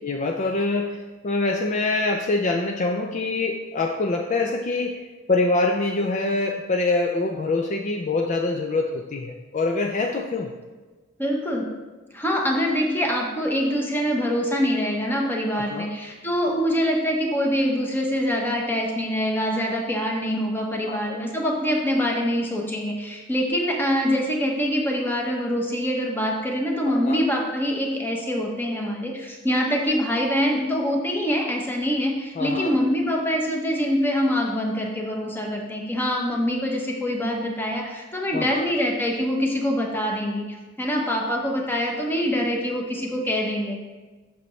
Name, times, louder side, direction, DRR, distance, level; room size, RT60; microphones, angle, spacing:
voice 1, 0.0-10.5 15.5-15.9 20.9-21.2 26.9-27.2 32.4-32.7 38.3-38.6, left 3 dB, 35° left, 3 dB, 0.4 m, -25 dB
voice 2, 11.2-11.7 12.1-43.8, equal, 10° left, 0 dB, 1.0 m, -24 dB
7.8 x 6.7 x 3.2 m, 1.3 s
head